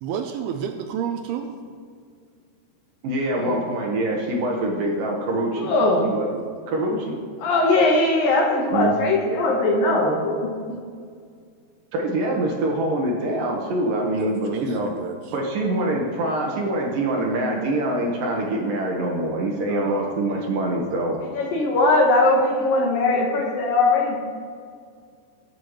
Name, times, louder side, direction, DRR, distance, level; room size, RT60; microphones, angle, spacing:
voice 1, 0.0-1.5 14.0-15.3 19.7-21.2, right 8 dB, 80° right, 5 dB, 2.4 m, -32 dB
voice 2, 3.0-5.7 6.0-6.3 6.7-7.2 8.7-8.9 11.9-14.9 15.3-21.2, right 1 dB, 65° right, 0 dB, 2.6 m, -24 dB
voice 3, 5.6-6.1 7.4-10.5 21.2-24.2, left 2 dB, 65° left, 0 dB, 2.6 m, -20 dB
20.5 x 9.0 x 3.1 m, 2.1 s
omnidirectional pair, 4.8 m